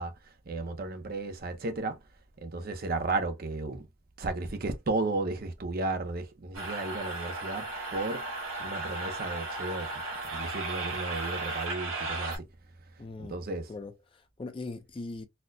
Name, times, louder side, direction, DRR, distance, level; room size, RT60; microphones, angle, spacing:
voice 1, 0.0-2.0 2.4-3.9 4.2-8.3 8.6-10.0 10.3-12.4 13.2-13.7, right 2 dB, 45° right, 0.6 m, -34 dB
sound 1, 6.5-12.4, right 2 dB, 85° right, 1.7 m, -35 dB
voice 2, 13.0-13.4 13.7-15.2, left 3 dB, 25° left, 0.4 m, -40 dB
4.2 x 2.1 x 2.5 m
head